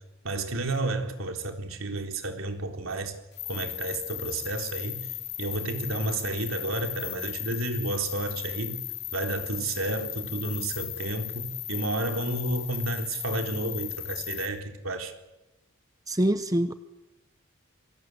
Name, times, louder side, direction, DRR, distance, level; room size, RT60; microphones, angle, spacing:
voice 1, 0.2-3.1 3.5-5.1 5.4-8.8 9.1-15.1, right 2 dB, 70° right, 4 dB, 4.1 m, -31 dB
watermark.signature, 3.3-14.5, left 13 dB, 55° left, 3.1 m, -37 dB
voice 2, 16.1-16.7, right 1 dB, 15° right, 11 dB, 0.9 m, -24 dB
27.5 x 24.5 x 8.1 m, 1.0 s
head